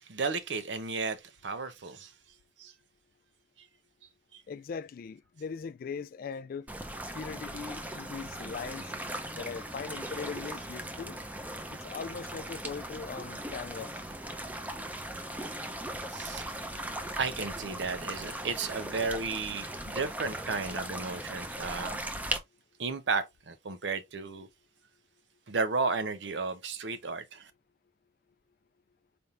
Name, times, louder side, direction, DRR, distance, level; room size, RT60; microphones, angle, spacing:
voice 1, 0.1-2.1 2.6-2.7 4.3-4.4 16.1-16.6 17.2-22.0 22.8-24.5 25.5-27.5, right 4 dB, 85° right, 0.7 m, -33 dB
voice 2, 4.5-6.7 7.1-8.9 9.3-11.2 11.7-13.9, left 5 dB, 55° left, 0.3 m, -40 dB
sound 1, 6.7-22.4, right 1 dB, 10° right, 0.6 m, -39 dB
4.3 x 3.5 x 2.5 m
head